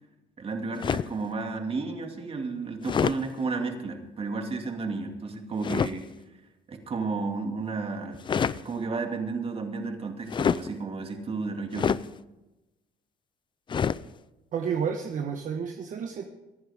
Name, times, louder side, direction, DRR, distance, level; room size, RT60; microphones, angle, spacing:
voice 1, 0.4-6.1 6.7-8.2 8.5-12.0, right 4 dB, 35° right, 4 dB, 2.4 m, -32 dB
sound 1, 0.8-1.2 2.8-3.2 5.6-6.0 8.1-8.6 10.3-10.7 11.7-12.1 13.7-14.0, left 7 dB, 30° left, 0.4 m, -26 dB
voice 2, 14.5-16.2, right 7 dB, 50° right, 4 dB, 1.3 m, -30 dB
24.0 x 11.0 x 3.6 m, 1.0 s
cardioid pair, 110°, 17 cm